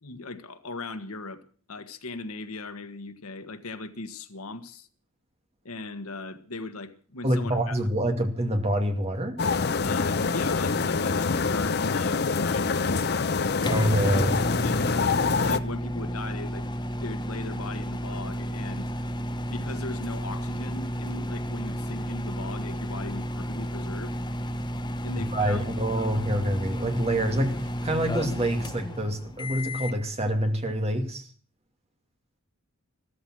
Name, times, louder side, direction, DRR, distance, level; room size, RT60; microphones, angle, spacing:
voice 1, 0.0-1.4 1.7-4.9 5.6-7.8 9.8-13.3 14.6-16.7 17.0-18.9 19.4-24.1 25.0-25.7 26.0-26.3, left 3 dB, 80° left, 1.6 m, -38 dB
voice 2, 7.2-9.4 13.7-14.4 25.1-27.6 27.8-31.3, right 1 dB, 30° right, 2.4 m, -26 dB
sound 1, 9.4-15.6, left 4 dB, 50° left, 0.7 m, -25 dB
sound 2, 13.6-30.0, equal, 20° left, 1.2 m, -32 dB
14.5 x 14.0 x 6.2 m
head